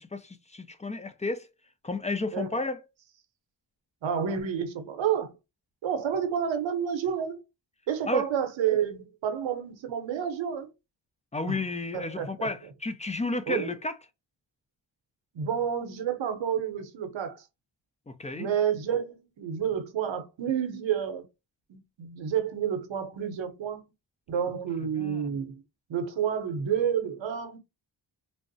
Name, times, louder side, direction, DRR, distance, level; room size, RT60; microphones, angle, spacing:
voice 1, 0.0-1.5 1.8-2.8 8.1-8.3 11.3-13.9 18.1-18.5 25.0-25.3, left 2 dB, 15° left, 0.3 m, -32 dB
voice 2, 4.0-5.4 5.8-7.4 7.9-10.7 11.4-11.6 11.9-12.5 13.5-13.7 15.3-17.4 18.3-21.2 21.7-23.8 24.3-25.6 25.9-27.6, right 8 dB, 85° right, 0.8 m, -29 dB
3.3 x 2.0 x 2.6 m
cardioid pair, 75°, 44 cm